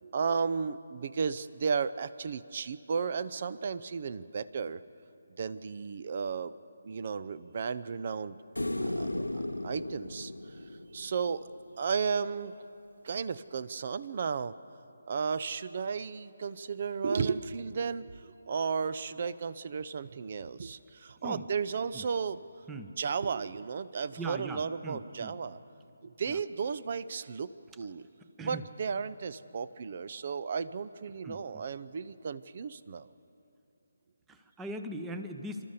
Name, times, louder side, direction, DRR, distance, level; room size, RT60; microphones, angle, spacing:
voice 1, 0.0-4.8 5.4-6.5 6.8-8.4 8.8-10.6 10.9-11.5 11.8-12.5 13.0-14.6 15.1-22.4 23.0-25.6 26.0-27.5 27.8-28.1 28.4-33.1, right 5 dB, 45° right, 16 dB, 0.6 m, -34 dB
sound 1, 8.6-11.8 14.4-14.5, left 1 dB, 85° left, 0.8 m, -36 dB
voice 2, 24.2-25.4 26.3-26.4 28.4-28.7 31.2-31.7 34.3-35.7, right 1 dB, 10° right, 7 dB, 1.0 m, -40 dB
29.5 x 13.0 x 6.7 m, 2.8 s
figure-of-eight pair, 150°, 0 cm